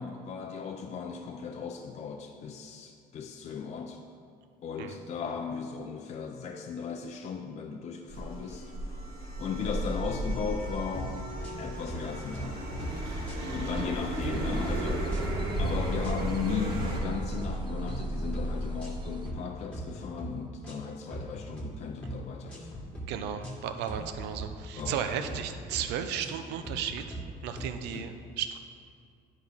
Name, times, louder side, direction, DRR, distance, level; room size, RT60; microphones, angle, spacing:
voice 1, 0.0-4.0 4.6-8.7 9.4-11.2 11.6-12.7 13.5-15.2 15.6-22.9 23.4-23.5 24.8-25.3 27.9-28.1, left 6 dB, 40° left, 3 dB, 0.5 m, -37 dB
sound 1, 8.1-17.0, right 1 dB, 65° right, 1.7 m, -34 dB
sound 2, 11.0-11.1 11.4-12.0 12.3-12.5 12.8-13.9 14.2-14.8 15.1-15.3 15.6-16.1 16.5-16.7 16.9-17.5 17.9-18.1 18.3-18.9 19.3-19.4 19.7-20.3 20.6-21.7 22.0-22.2 22.5-23.1 23.4-23.6 23.9-24.5 24.8-25.0 25.3-25.8 26.2-26.4 26.6-27.2 27.6-27.7, right 1 dB, 5° left, 1.6 m, -40 dB
sound 3, 14.3-19.3, right 2 dB, 30° right, 0.4 m, -35 dB
voice 2, 23.1-28.6, right 8 dB, 90° right, 8 dB, 0.5 m, -35 dB
10.0 x 4.6 x 3.5 m, 2.3 s
cardioid pair, 110°, 17 cm